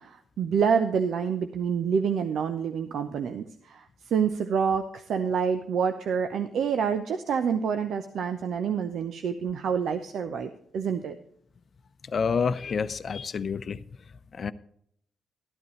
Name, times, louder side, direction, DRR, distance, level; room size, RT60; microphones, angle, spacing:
voice 1, 0.0-11.2, right 6 dB, 70° right, 0.8 m, -27 dB
voice 2, 12.1-13.8 14.3-14.5, left 5 dB, 55° left, 0.7 m, -28 dB
13.0 x 12.0 x 3.1 m
hypercardioid pair, 45°, 0 cm